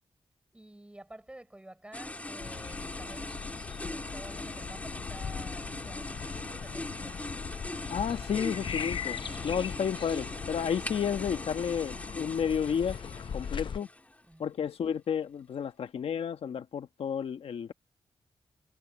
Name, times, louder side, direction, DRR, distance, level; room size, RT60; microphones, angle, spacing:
voice 1, 0.5-3.5 3.8-7.4 13.4-13.7 14.2-14.5, right 1 dB, 10° right, 6.3 m, -50 dB
sound 1, 1.9-14.2, left 2 dB, 15° left, 3.2 m, -41 dB
sound 2, 2.4-13.8, left 7 dB, 60° left, 0.6 m, -40 dB
voice 2, 7.9-9.2 9.4-13.0 13.3-13.9 14.4-17.7, left 7 dB, 80° left, 1.4 m, -31 dB
wide cardioid pair, 105°, 10 cm